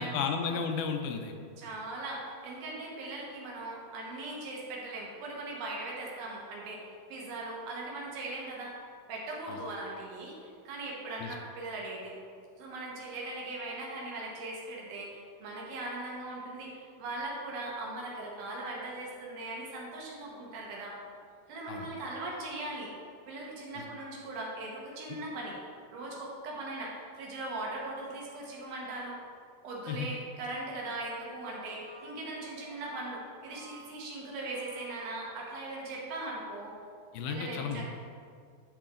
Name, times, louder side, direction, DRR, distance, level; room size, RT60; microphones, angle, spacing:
voice 1, 0.0-1.3 9.5-9.6 11.2-11.4 21.7-21.9 23.8-23.9 29.9-30.1 37.1-37.9, left 6 dB, 80° left, 5 dB, 2.4 m, -33 dB
voice 2, 1.6-8.7 9.1-12.1 12.6-20.9 21.5-22.9 23.3-25.6 25.9-29.2 29.6-36.7 37.3-37.9, right 2 dB, 70° right, -3 dB, 3.0 m, -39 dB
Brass instrument, 31.5-36.0, right 1 dB, 35° left, 1.2 m, -54 dB
10.5 x 6.0 x 3.7 m, 2.2 s
omnidirectional pair, 4.5 m